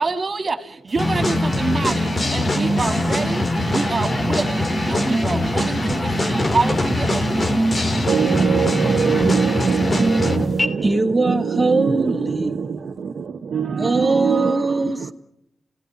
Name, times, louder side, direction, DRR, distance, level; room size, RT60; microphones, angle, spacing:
voice 1, 0.0-7.6, right 3 dB, 50° right, 2.5 m, -26 dB
sound 1, 1.0-10.7, left 1 dB, 40° left, 3.0 m, -21 dB
voice 2, 8.1-10.9 11.2-15.1, right 6 dB, 75° right, 1.1 m, -23 dB
voice 3, 10.8-12.8 13.8-15.1, right 2 dB, 20° right, 2.6 m, -21 dB
28.5 x 18.0 x 9.8 m
cardioid pair, 50°, 0 cm